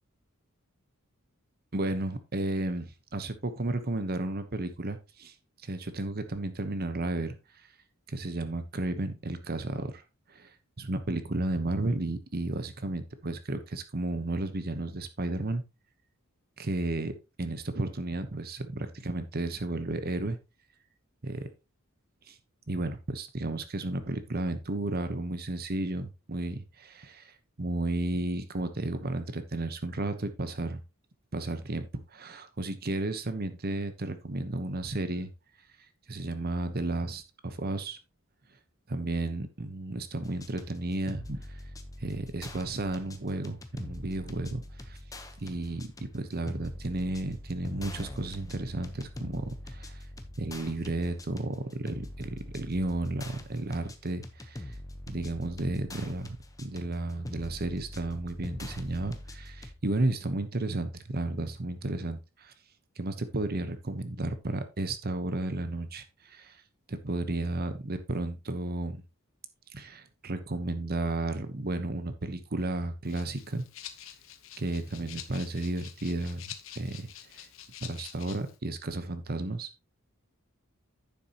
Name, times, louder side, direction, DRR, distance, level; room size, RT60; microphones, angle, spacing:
voice 1, 1.7-5.3 5.6-7.4 8.1-10.0 10.3-15.6 16.6-17.1 17.4-20.4 21.2-21.5 22.3-22.4 22.7-30.8 31.3-35.3 36.1-38.0 38.9-41.6 42.0-45.0 45.4-50.0 50.4-54.7 55.1-62.5 63.0-66.6 66.9-69.0 69.7-73.6 74.6-77.5 77.8-79.8, right 2 dB, 45° right, 10 dB, 1.0 m, -33 dB
sound 1, 40.2-59.7, left 1 dB, 15° left, 1.0 m, -44 dB
Rattle (instrument), 73.0-78.6, left 10 dB, 65° left, 1.1 m, -47 dB
9.9 x 7.2 x 2.9 m, 0.26 s
head